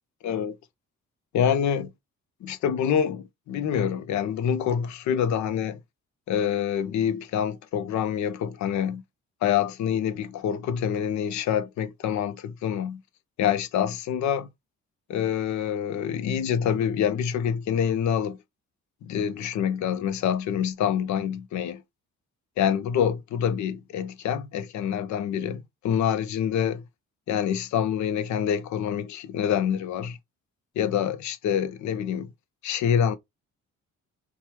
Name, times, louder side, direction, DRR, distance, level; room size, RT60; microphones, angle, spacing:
voice 1, 0.2-0.6 1.3-1.9 2.4-5.8 6.3-9.0 9.4-13.0 13.4-14.5 15.1-18.4 19.0-21.8 22.6-26.8 27.3-30.2 30.8-32.3 32.6-33.2, left 8 dB, 70° left, 0.6 m, -26 dB
2.9 x 2.2 x 2.9 m
cardioid pair, 90°, 30 cm